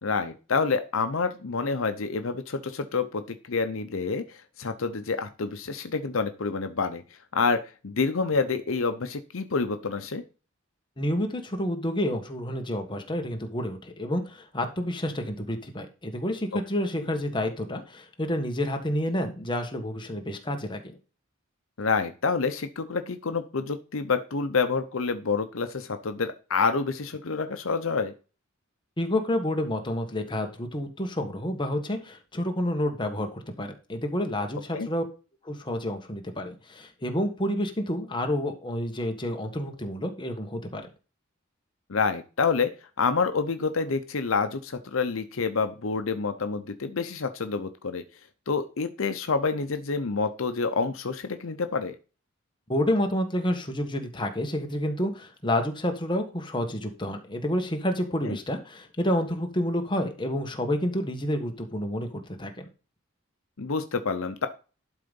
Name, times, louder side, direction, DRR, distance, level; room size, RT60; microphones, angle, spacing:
voice 1, 0.0-7.0 7.3-10.2 21.8-28.1 34.7-34.9 41.9-48.0 48.5-52.0 58.3-58.4 63.6-64.5, left 4 dB, 70° left, 9 dB, 0.8 m, -28 dB
voice 2, 11.0-21.0 29.0-35.0 35.4-40.8 52.7-62.6, left 1 dB, 20° left, 4 dB, 1.4 m, -29 dB
11.5 x 3.9 x 5.3 m, 0.33 s
head